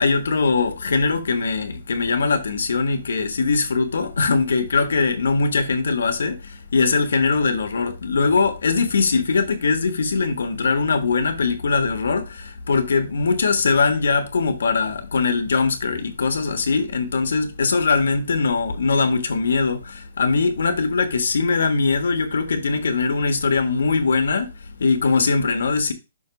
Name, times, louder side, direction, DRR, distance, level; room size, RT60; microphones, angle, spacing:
voice 1, 0.0-25.9, left 4 dB, 90° left, 1.4 m, -21 dB
6.3 x 3.1 x 5.8 m
hypercardioid pair, 180°, 0 cm